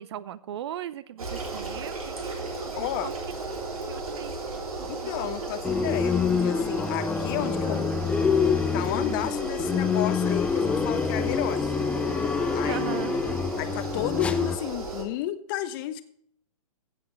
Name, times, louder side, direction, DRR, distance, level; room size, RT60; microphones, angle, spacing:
voice 1, 0.0-3.3 3.9-4.4 4.8-5.5 7.6-8.0 12.6-13.2, right 11 dB, 45° right, 18 dB, 0.6 m, -38 dB
sound 1, 1.2-15.0, right 3 dB, 70° right, 3.1 m, -35 dB
voice 2, 2.8-3.1 4.9-7.9 8.7-11.9 12.5-12.8 13.6-16.0, left 13 dB, 35° left, 12 dB, 1.0 m, -32 dB
sound 2, 5.0-14.6, left 6 dB, 75° left, 1.7 m, -51 dB
sound 3, 5.6-14.6, left 6 dB, 5° left, 0.4 m, -26 dB
15.5 x 7.6 x 3.2 m, 0.65 s
figure-of-eight pair, 120°, 19 cm